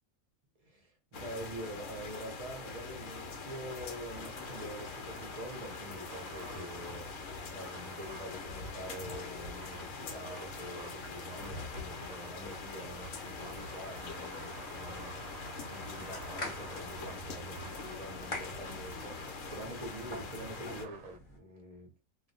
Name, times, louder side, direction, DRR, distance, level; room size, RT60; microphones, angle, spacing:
voice 1, 0.6-15.1 15.7-21.9, right 1 dB, 40° right, 0.5 m, -46 dB
sound 1, 1.1-20.8, left 4 dB, 70° left, 0.9 m, -43 dB
sound 2, 3.6-21.2, right 5 dB, 70° right, 0.9 m, -52 dB
spinning lid, 15.8-21.4, left 2 dB, 45° left, 0.9 m, -46 dB
2.4 x 2.1 x 2.6 m
omnidirectional pair, 1.5 m